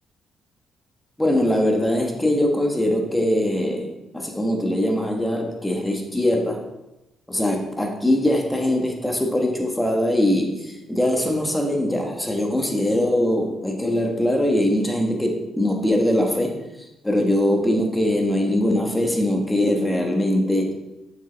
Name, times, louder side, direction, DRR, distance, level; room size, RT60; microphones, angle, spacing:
voice 1, 1.2-6.6 7.3-16.5 17.0-20.7, left 1 dB, 10° left, 2 dB, 1.3 m, -22 dB
6.9 x 6.4 x 3.4 m, 0.94 s
cardioid pair, 90°, 0 cm